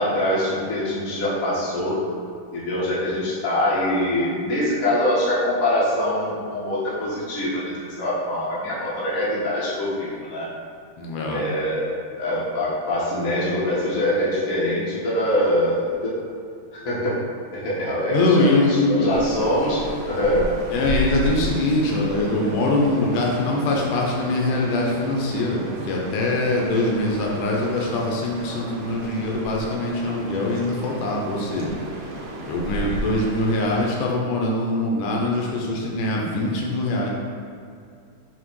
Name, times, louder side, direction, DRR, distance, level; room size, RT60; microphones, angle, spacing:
voice 1, 0.0-2.0 2.5-10.5 11.3-16.1 16.7-17.2 17.5-20.4, left 1 dB, 40° left, -8 dB, 1.3 m, -24 dB
voice 2, 11.0-11.4 18.1-19.2 20.7-31.8 32.5-37.1, left 2 dB, 75° left, -1 dB, 2.3 m, -23 dB
sound 1, 19.1-33.8, equal, 75° right, 2.2 m, -33 dB
7.2 x 3.4 x 4.7 m, 2.3 s
omnidirectional pair, 3.8 m